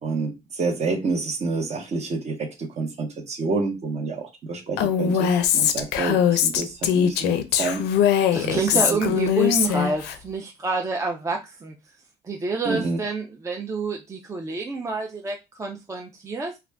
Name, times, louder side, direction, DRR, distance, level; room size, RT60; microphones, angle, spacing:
voice 1, 0.0-7.9 8.4-9.1 12.6-13.0, right 3 dB, 40° right, 0.9 m, -28 dB
Female speech woman speaking, 4.8-10.2, left 9 dB, 80° left, 0.4 m, -21 dB
voice 2, 8.3-11.7 12.2-16.5, right 3 dB, 20° right, 0.4 m, -28 dB
2.4 x 2.2 x 3.3 m
cardioid pair, 110°, 17 cm